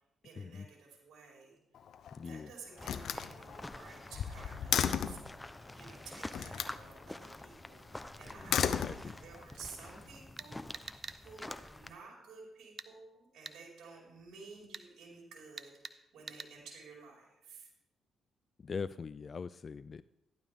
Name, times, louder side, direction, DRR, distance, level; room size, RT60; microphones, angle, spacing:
voice 1, 0.2-1.6 2.2-5.2 5.7-10.6 11.2-17.7, right 4 dB, 70° right, -3 dB, 4.6 m, -53 dB
Slam, 1.7-2.3 2.8-5.3 6.3-6.8 8.3-9.4, left 8 dB, 70° left, 0.7 m, -34 dB
voice 2, 2.1-2.5 8.8-9.1 18.6-20.0, left 5 dB, 45° left, 15 dB, 0.3 m, -41 dB
sound 1, 2.8-12.0, left 1 dB, 15° left, 0.7 m, -48 dB
sound 2, 10.4-11.2 12.8-12.9 13.5-13.6 14.7-14.9 15.6-16.0 16.3-16.5, right 5 dB, 45° right, 0.8 m, -45 dB
14.5 x 11.5 x 3.6 m, 0.92 s
cardioid pair, 70°, 0 cm